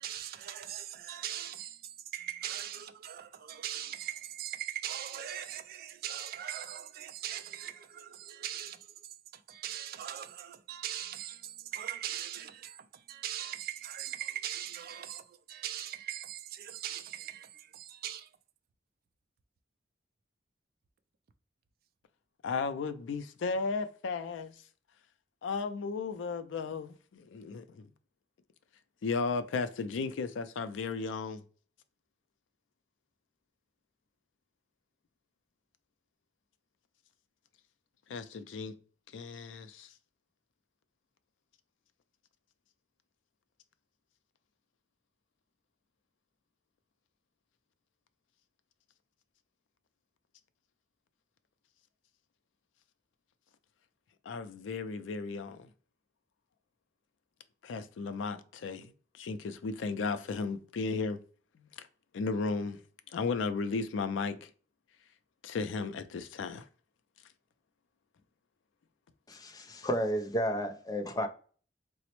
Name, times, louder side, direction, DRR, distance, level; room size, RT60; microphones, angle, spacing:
voice 1, 0.0-18.3, right 11 dB, 55° right, 0.3 m, -40 dB
voice 2, 22.4-24.5 25.4-27.9 29.0-31.4 38.1-38.7 39.1-39.9 54.3-55.7 57.6-61.2 61.6-61.9 62.1-62.8 63.1-64.5 65.4-66.7, left 4 dB, 85° left, 0.4 m, -35 dB
voice 3, 69.3-71.3, equal, 20° left, 0.4 m, -32 dB
4.0 x 2.0 x 2.9 m
head